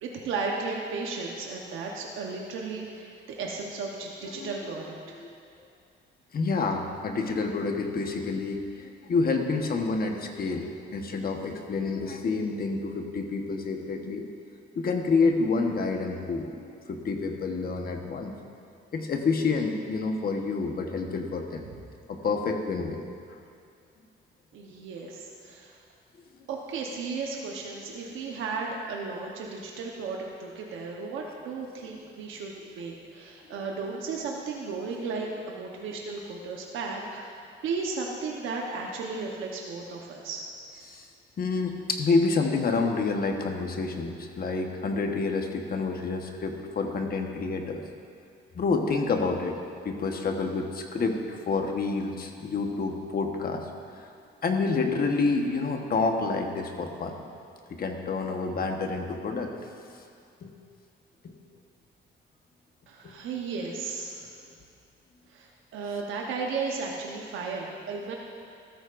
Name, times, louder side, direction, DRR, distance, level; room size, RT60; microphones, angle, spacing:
voice 1, 0.0-4.9 24.5-25.7 26.5-40.4 62.9-64.3 65.3-68.1, right 4 dB, 85° right, -1 dB, 1.1 m, -35 dB
voice 2, 6.3-14.2 14.7-18.3 18.9-21.7 22.1-23.0 40.8-41.0 41.4-47.8 48.5-49.6 49.8-53.6 54.0-54.1 54.4-57.2 57.7-59.5 60.4-60.5 61.2-61.3 63.0-63.1, left 4 dB, 50° left, 3 dB, 1.2 m, -28 dB
14.0 x 13.0 x 2.6 m, 2.4 s
cardioid pair, 90°, 20 cm